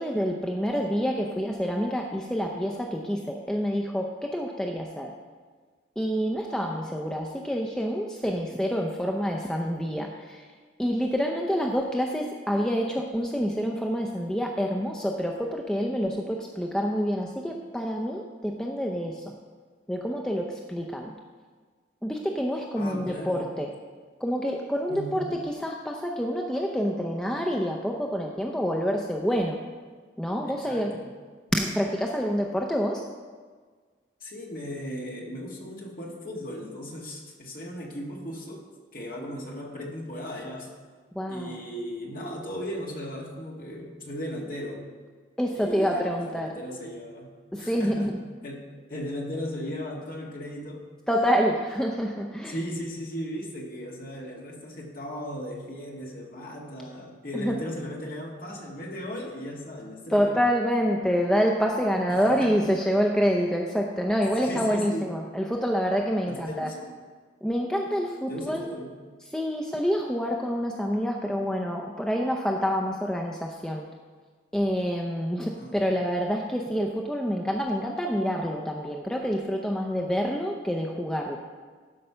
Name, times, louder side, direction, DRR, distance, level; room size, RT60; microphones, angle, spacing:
voice 1, 0.0-5.1 6.0-10.5 10.8-19.3 19.9-21.1 22.0-23.7 24.2-29.6 30.2-30.9 31.5-33.0 41.1-41.6 45.4-46.5 47.5-48.2 51.1-52.5 57.3-57.6 60.1-66.7 67.4-68.7 69.3-73.9 74.5-81.4, equal, 5° left, 0 dB, 0.5 m, -27 dB
voice 2, 22.8-23.5 24.9-25.4 30.5-31.1 34.2-38.6 38.9-40.7 41.3-44.8 45.5-50.8 52.5-60.4 62.1-62.6 64.2-65.1 66.3-66.9 68.3-68.9 75.5-75.8, equal, 45° left, -1 dB, 1.7 m, -37 dB
12.0 x 5.3 x 5.6 m, 1.5 s
head